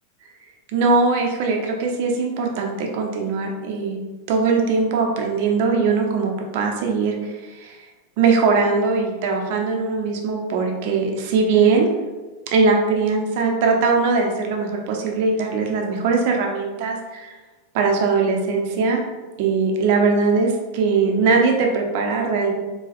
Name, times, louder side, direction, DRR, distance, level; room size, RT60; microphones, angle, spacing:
voice 1, 0.7-4.0 4.3-7.8 8.2-11.9 12.5-17.3 17.7-19.0 19.4-22.5, right 4 dB, 60° right, 1 dB, 0.6 m, -20 dB
4.1 x 2.3 x 2.5 m, 1.2 s
hypercardioid pair, 95°, 0 cm